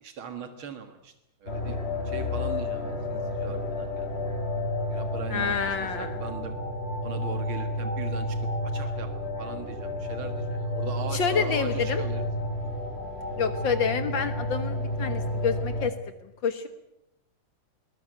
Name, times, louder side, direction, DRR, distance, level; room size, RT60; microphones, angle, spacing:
voice 1, 0.0-1.1 1.4-1.8 2.0-4.1 4.9-6.5 7.0-8.4 8.6-9.1 9.4-12.5, right 6 dB, 85° right, 7 dB, 2.5 m, -40 dB
sound 1, 1.5-15.9, left 1 dB, 30° left, 2.9 m, -31 dB
voice 2, 5.3-6.2 11.1-12.0 13.4-15.9 16.2-16.7, left 6 dB, 70° left, 9 dB, 2.0 m, -28 dB
22.0 x 19.5 x 9.2 m, 0.84 s
omnidirectional pair, 2.2 m